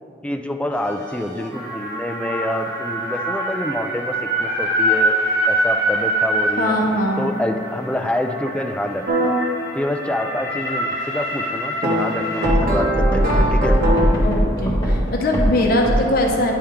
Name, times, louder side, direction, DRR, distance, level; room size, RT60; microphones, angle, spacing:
voice 1, 0.2-5.2 5.5-6.8 7.2-9.4 9.7-13.8, left 1 dB, 5° left, 5 dB, 0.3 m, -27 dB
sound 1, 0.7-16.0, equal, 25° left, 1.8 m, -23 dB
voice 2, 6.6-7.3 14.2-16.5, left 1 dB, 55° left, 0 dB, 0.8 m, -21 dB
sound 2, 9.1-9.3 11.8-14.3, right 1 dB, 55° right, 1.1 m, -21 dB
9.9 x 4.4 x 3.6 m, 2.5 s
head